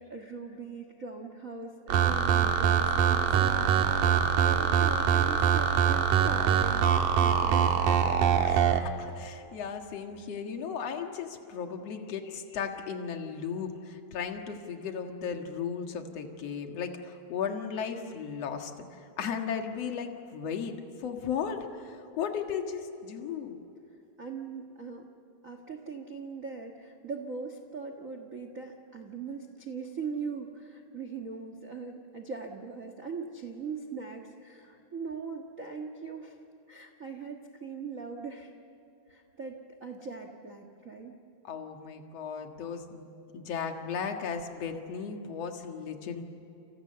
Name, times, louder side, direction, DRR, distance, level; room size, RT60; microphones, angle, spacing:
voice 1, 0.0-6.9 7.2-8.5 24.2-25.0 25.4-36.4 36.7-38.5 39.1-41.1, right 5 dB, 85° right, 5 dB, 0.7 m, -40 dB
sound 1, 1.9-8.8, right 8 dB, 65° right, 2.6 m, -24 dB
voice 2, 8.4-20.7 21.0-23.6 41.4-46.2, left 6 dB, 50° left, 4 dB, 2.5 m, -36 dB
30.0 x 28.5 x 6.8 m, 2.8 s
omnidirectional pair, 4.2 m